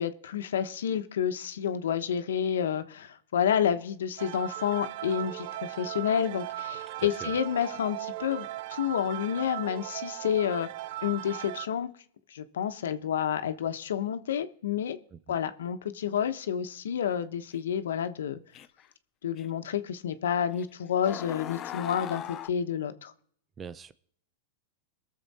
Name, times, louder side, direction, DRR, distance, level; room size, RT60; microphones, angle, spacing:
voice 1, 0.0-10.7 11.0-11.9 12.3-15.0 15.3-18.4 19.2-23.1, left 9 dB, 85° left, 9 dB, 1.0 m, -29 dB
sound 1, 4.2-11.7, right 15 dB, 55° right, 0.4 m, -38 dB
voice 2, 7.0-7.4 15.1-15.4 23.6-23.9, right 6 dB, 20° right, 15 dB, 0.7 m, -42 dB
sound 2, 17.5-17.6 18.5-18.9 19.4-19.5 20.5-20.6 21.0-22.5, left 11 dB, 30° left, 0.5 m, -38 dB
20.5 x 7.1 x 4.2 m, 0.63 s
hypercardioid pair, 130°, 0 cm